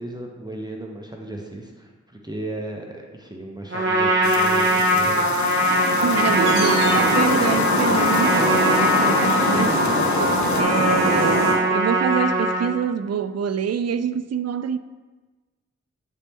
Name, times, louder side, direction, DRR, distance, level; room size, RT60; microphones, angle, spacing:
voice 1, 0.0-5.4 9.5-9.9 11.1-11.4, right 1 dB, 15° right, 1.0 m, -35 dB
Trumpet, 3.7-12.7, equal, 40° right, 1.7 m, -21 dB
sound 1, 4.2-10.6, left 8 dB, 75° left, 0.5 m, -34 dB
sound 2, 5.3-11.5, left 1 dB, 90° left, 2.1 m, -23 dB
voice 2, 6.0-14.8, right 7 dB, 60° right, 0.4 m, -26 dB
9.2 x 4.3 x 3.6 m
cardioid pair, 50°, 29 cm